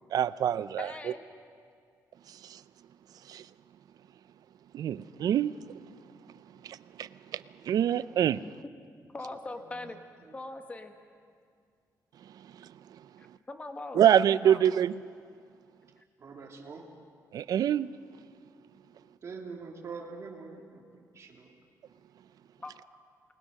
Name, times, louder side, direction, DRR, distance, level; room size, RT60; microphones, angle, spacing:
voice 1, 0.1-0.9 2.4-2.6 3.3-3.4 4.7-5.5 6.6-8.4 13.9-15.0 17.3-17.9, right 10 dB, 65° right, 16 dB, 0.5 m, -26 dB
voice 2, 0.8-1.2 8.4-8.5 9.1-10.0 10.3-10.9 13.2-14.7 22.6-22.7, left 2 dB, 20° left, 6 dB, 1.4 m, -41 dB
voice 3, 9.5-10.3 16.2-16.9 19.2-21.5, right 4 dB, 45° right, 0 dB, 3.0 m, -45 dB
29.0 x 20.0 x 6.5 m, 2.2 s
wide cardioid pair, 150°, 7 cm